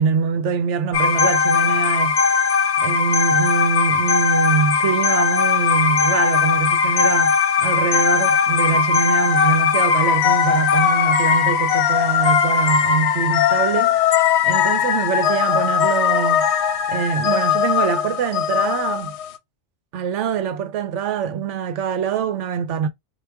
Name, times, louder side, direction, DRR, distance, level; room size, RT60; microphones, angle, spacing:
voice 1, 0.0-2.2 2.8-14.0 14.4-16.5 16.9-19.2 19.9-22.9, right 6 dB, 75° right, 1.0 m, -24 dB
sound 1, 0.9-19.3, left 7 dB, 70° left, 0.8 m, -19 dB
4.8 x 2.4 x 3.3 m
omnidirectional pair, 1.2 m